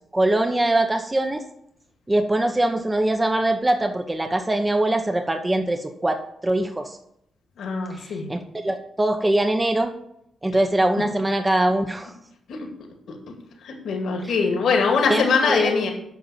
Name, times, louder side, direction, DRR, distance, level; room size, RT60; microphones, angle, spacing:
voice 1, 0.1-1.4 2.1-7.0 7.9-9.9 10.4-12.1 14.2-14.4 15.1-15.9, right 1 dB, 20° right, 6 dB, 1.1 m, -23 dB
voice 2, 7.6-8.3 12.5-12.7 13.1-13.2 13.6-15.9, left 5 dB, 75° left, 1 dB, 2.3 m, -22 dB
9.4 x 5.7 x 7.4 m, 0.75 s
cardioid pair, 65°, 0 cm